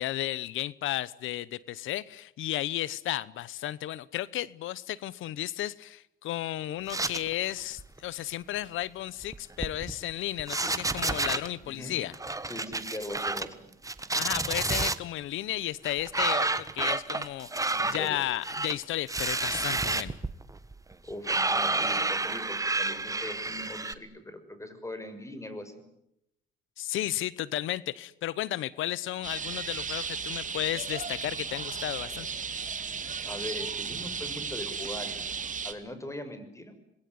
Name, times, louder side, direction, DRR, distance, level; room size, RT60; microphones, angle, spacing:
voice 1, 0.0-12.1 14.1-20.2 26.8-32.3, left 14 dB, 85° left, 21 dB, 1.0 m, -33 dB
sound 1, 6.9-7.5 7.8-8.0 9.2-10.1 10.4-11.5 12.1-13.5 13.8-15.0 15.8-23.9, right 3 dB, 15° right, 1.7 m, -30 dB
voice 2, 11.6-12.0 12.5-13.6 17.7-18.2 21.0-25.7 33.2-35.4 35.6-36.7, left 1 dB, 15° left, 10 dB, 6.4 m, -40 dB
sound 2, 29.2-35.7, right 6 dB, 40° right, 2.8 m, -35 dB
27.0 x 21.5 x 9.6 m, 0.80 s
cardioid pair, 90°, 20 cm